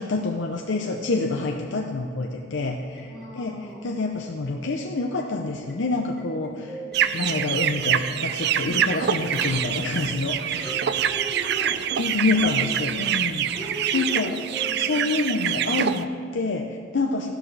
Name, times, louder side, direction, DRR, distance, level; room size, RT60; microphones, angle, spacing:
voice 1, 0.0-6.8 7.1-11.0 12.0-13.5 13.9-14.4 14.7-17.3, left 3 dB, 75° left, 2 dB, 0.6 m, -27 dB
voice 2, 3.0-3.8 6.8-7.2 10.6-11.8 12.3-12.8 13.5-14.9 17.2-17.3, equal, 20° left, -7 dB, 2.7 m, -39 dB
sound 1, 3.0-15.3, right 4 dB, 5° left, 1.2 m, -45 dB
sound 2, 6.9-14.2, right 1 dB, 30° right, 2.0 m, -47 dB
sound 3, 6.9-16.0, right 9 dB, 60° right, 0.4 m, -25 dB
13.5 x 12.0 x 3.3 m, 2.4 s
head